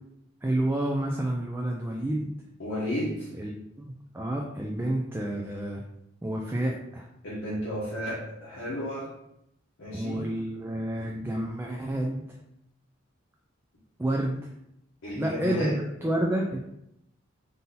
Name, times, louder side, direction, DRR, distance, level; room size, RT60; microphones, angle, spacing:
voice 1, 0.4-2.3 3.4-3.5 3.8-5.8 6.2-7.1 9.9-12.4 14.0-14.5 15.1-16.6, right 1 dB, 10° right, -1 dB, 0.3 m, -29 dB
voice 2, 2.6-3.3 7.2-9.1 9.8-10.3 15.0-15.8, equal, 80° left, -9 dB, 1.2 m, -33 dB
3.9 x 2.7 x 3.9 m, 0.79 s
head